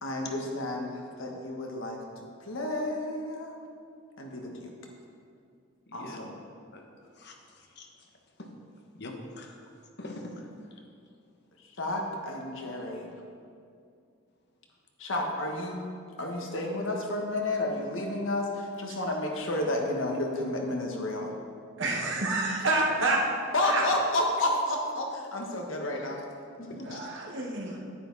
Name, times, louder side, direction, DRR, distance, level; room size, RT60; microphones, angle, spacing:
voice 1, 0.0-2.0 2.5-3.6 4.2-4.7 5.9-6.3 11.8-13.1 15.0-15.8 16.2-21.3 23.5-26.2 26.6-27.0, left 1 dB, 75° left, 1 dB, 1.5 m, -31 dB
voice 2, 5.9-6.2 6.7-6.8 7.2-7.3 7.8-7.9 8.4-8.5 8.9-9.6 10.0-10.5 26.7-26.8, left 2 dB, 55° left, 2 dB, 1.2 m, -42 dB
voice 3, 21.8-23.2 23.6-23.8 26.8-27.8, right 2 dB, 65° right, -1 dB, 1.6 m, -28 dB
9.9 x 9.6 x 4.1 m, 2.4 s
head